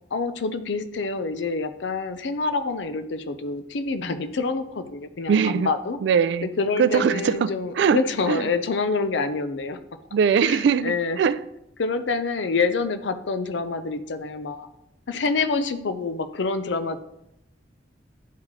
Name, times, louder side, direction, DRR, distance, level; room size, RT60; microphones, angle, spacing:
voice 1, 0.1-6.0 6.4-9.8 10.4-11.2 11.8-14.7 15.1-17.0, left 4 dB, 85° left, 10 dB, 0.6 m, -27 dB
voice 2, 5.3-5.7 6.0-6.5 6.8-8.0 8.3-8.5 10.1-11.4, right 6 dB, 75° right, 14 dB, 0.3 m, -21 dB
10.0 x 3.7 x 3.2 m, 0.84 s
head